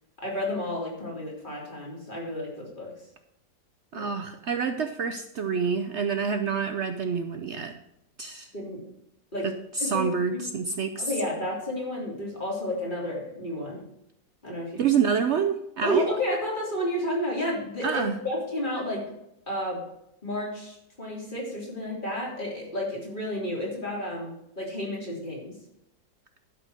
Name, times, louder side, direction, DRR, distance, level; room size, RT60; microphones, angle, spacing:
voice 1, 0.2-2.9 3.9-4.1 6.4-6.5 8.5-8.8 9.3-9.5 9.8-10.1 10.3-10.6 11.0-13.8 14.4-14.8 15.8-19.1 19.5-19.8 20.2-24.3 24.6-25.5, equal, 25° left, -3 dB, 3.5 m, -31 dB
voice 2, 3.9-7.8 8.2-8.5 9.4-11.1 14.8-16.1 17.8-18.2, right 6 dB, 80° right, 7 dB, 0.6 m, -27 dB
12.0 x 6.0 x 6.4 m, 0.82 s
omnidirectional pair, 2.0 m